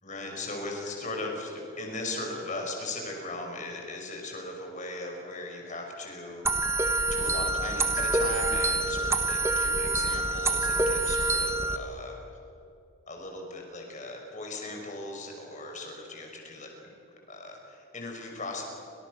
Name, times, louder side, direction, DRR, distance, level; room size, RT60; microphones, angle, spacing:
voice 1, 0.0-6.4 7.1-12.1 13.1-16.7 17.3-18.6, left 2 dB, 35° left, 1 dB, 5.9 m, -38 dB
sound 1, 6.4-11.8, right 2 dB, 10° right, 1.3 m, -26 dB
29.5 x 26.5 x 6.7 m, 2.7 s
head